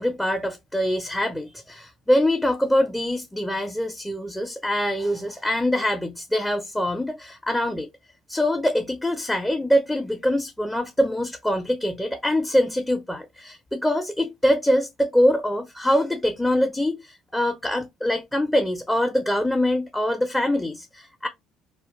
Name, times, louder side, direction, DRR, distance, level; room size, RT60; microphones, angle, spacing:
voice 1, 0.0-7.9 8.3-21.3, left 1 dB, 10° left, 0.4 m, -24 dB
2.1 x 2.1 x 2.9 m
hypercardioid pair, 55°, 0 cm